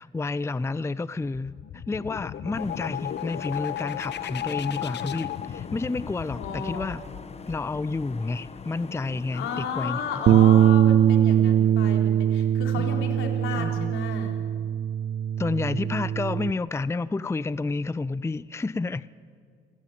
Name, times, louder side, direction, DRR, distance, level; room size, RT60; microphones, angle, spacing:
voice 1, 0.0-7.0 7.5-10.0 10.3-10.4 12.8-13.1 13.5-13.9 15.4-19.1, left 3 dB, 15° left, 18 dB, 0.5 m, -30 dB
sound 1, 1.3-8.9, left 11 dB, 60° left, 1.1 m, -35 dB
sound 2, 2.5-10.7, left 4 dB, 30° left, 1.2 m, -43 dB
voice 2, 6.4-6.9 9.3-14.4, left 5 dB, 85° left, 2 dB, 4.1 m, -33 dB
Bass guitar, 10.3-16.5, right 10 dB, 60° right, 0.5 m, -21 dB
27.5 x 16.0 x 9.6 m, 2.3 s
cardioid pair, 90°, 20 cm